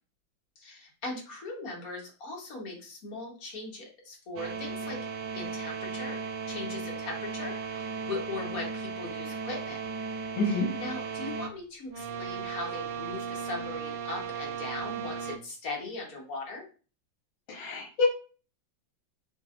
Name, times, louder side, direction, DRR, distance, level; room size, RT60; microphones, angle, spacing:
voice 1, 0.6-5.0 5.3-6.2 6.5-9.8 10.5-16.6, left 2 dB, 50° left, -1 dB, 1.6 m, -39 dB
sound 1, 4.4-11.5 11.9-15.4, right 5 dB, 70° right, 1.3 m, -36 dB
voice 2, 10.3-10.7 17.5-18.0, left 3 dB, 75° left, -2 dB, 1.9 m, -27 dB
7.1 x 2.6 x 2.5 m, 0.37 s
omnidirectional pair, 2.1 m